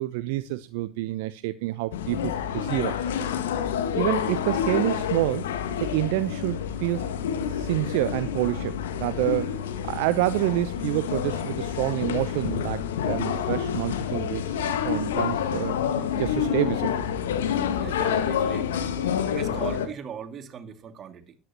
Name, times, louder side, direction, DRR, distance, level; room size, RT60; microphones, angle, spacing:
voice 1, 0.0-3.1 4.0-5.5 5.8-7.1 7.5-15.8 16.2-17.0, right 17 dB, 70° right, 0.7 m, -28 dB
sound 1, 1.9-19.9, left 8 dB, 80° left, 1.7 m, -28 dB
voice 2, 17.8-18.9 19.3-21.4, right 8 dB, 40° right, 2.3 m, -38 dB
13.5 x 10.5 x 3.0 m
hypercardioid pair, 80°, 0 cm